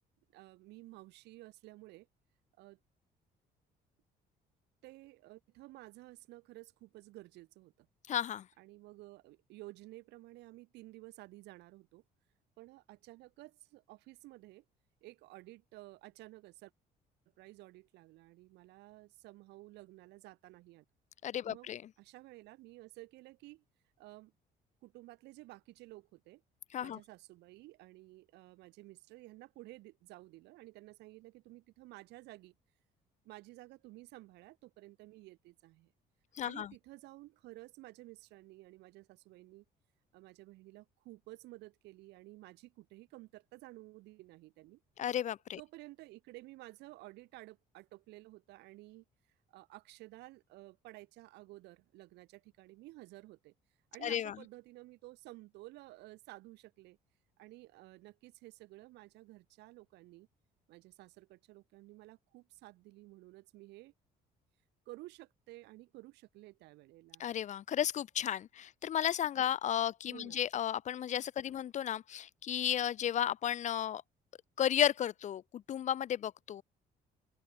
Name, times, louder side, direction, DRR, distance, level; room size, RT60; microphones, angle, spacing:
voice 1, 0.3-2.1 2.6-2.8 4.8-7.9 8.6-12.0 12.6-14.6 15.0-16.7 17.4-20.8 21.5-21.7 22.0-23.6 24.0-24.3 24.8-26.4 26.8-32.5 33.2-35.9 36.4-39.6 40.1-44.8 45.6-49.1 49.5-53.5 53.9-57.0 57.4-60.3 60.7-63.9 64.9-67.3 69.4-69.5 70.1-70.5 71.4-71.6, right 19 dB, 85° right, 2.0 m, -53 dB
voice 2, 8.1-8.4 21.2-21.8 26.7-27.0 36.4-36.7 45.0-45.6 54.0-54.3 67.2-74.0 74.6-76.6, left 10 dB, 45° left, 0.5 m, -33 dB
open air
cardioid pair, 110°, 17 cm